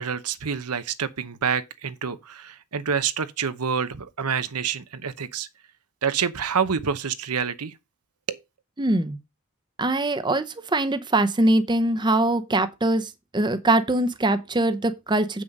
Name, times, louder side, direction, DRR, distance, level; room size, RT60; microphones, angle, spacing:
voice 1, 0.0-5.5 6.0-7.7 8.3-8.4, right 6 dB, 85° right, 0.9 m, -27 dB
voice 2, 8.8-9.2 9.8-10.4 10.7-15.4, right 2 dB, 20° right, 0.7 m, -22 dB
7.7 x 6.2 x 5.3 m
head